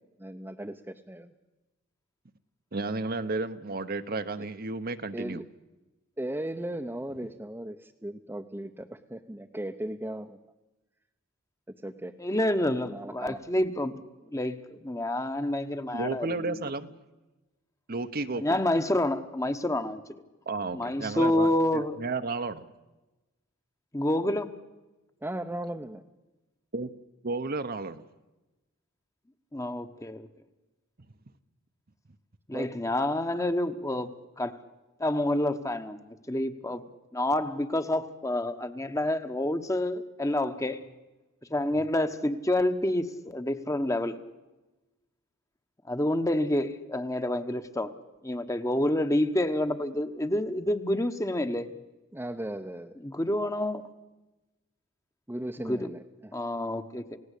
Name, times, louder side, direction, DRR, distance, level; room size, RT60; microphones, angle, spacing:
voice 1, 0.2-1.3 5.1-5.4 6.2-10.4 11.8-12.1 12.8-13.4 25.2-26.0 32.5-32.7 52.1-53.4 55.3-56.4, right 1 dB, 10° right, 4 dB, 0.8 m, -37 dB
voice 2, 2.7-5.4 15.9-16.9 17.9-18.6 20.5-22.7 26.7-26.9 27.2-28.0, right 3 dB, 45° right, 10 dB, 0.9 m, -32 dB
voice 3, 12.2-14.0 14.3-16.7 18.4-20.0 20.7-22.0 23.9-24.5 29.5-30.3 32.5-34.6 35.0-36.8 37.1-40.8 41.5-44.1 45.9-47.9 48.2-51.7 53.0-53.9 55.6-55.8 56.3-57.2, left 1 dB, 15° left, 9 dB, 1.1 m, -28 dB
29.0 x 17.0 x 8.3 m, 1.1 s
head